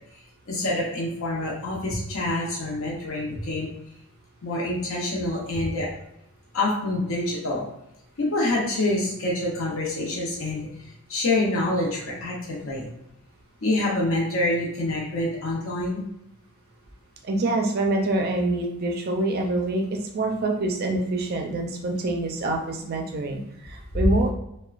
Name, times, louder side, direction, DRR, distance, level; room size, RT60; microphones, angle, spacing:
voice 1, 0.5-3.7 4.4-5.9 6.5-7.6 8.2-10.6 11.1-12.9 13.6-16.0, left 2 dB, 60° left, -4 dB, 0.7 m, -26 dB
voice 2, 17.2-24.3, right 2 dB, 45° right, 2 dB, 0.4 m, -26 dB
2.9 x 2.1 x 2.4 m, 0.80 s
head